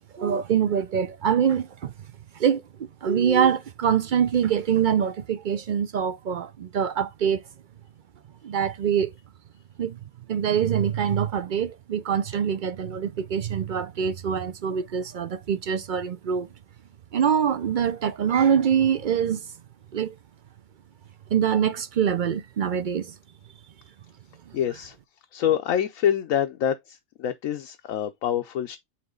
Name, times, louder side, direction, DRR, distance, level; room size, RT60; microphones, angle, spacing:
voice 1, 0.1-1.9 2.3-7.4 8.4-9.1 9.8-10.0 10.3-16.5 17.1-19.5 19.9-20.1 21.3-23.1, right 8 dB, 60° right, 0.5 m, -24 dB
voice 2, 24.5-25.0 25.3-28.8, left 9 dB, 80° left, 1.1 m, -26 dB
8.5 x 3.0 x 3.7 m
omnidirectional pair, 1.4 m